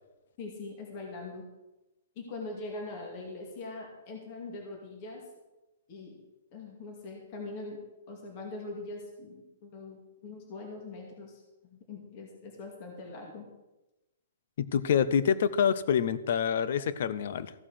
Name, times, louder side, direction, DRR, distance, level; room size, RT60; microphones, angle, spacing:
voice 1, 0.4-1.4 2.2-5.2 5.9-6.2 6.5-7.8 8.1-11.4 11.7-13.5, left 3 dB, 30° left, 1 dB, 2.1 m, -42 dB
voice 2, 14.6-17.5, left 8 dB, 50° left, 16 dB, 0.7 m, -27 dB
14.5 x 6.3 x 6.2 m, 1.0 s
hypercardioid pair, 170°, 0 cm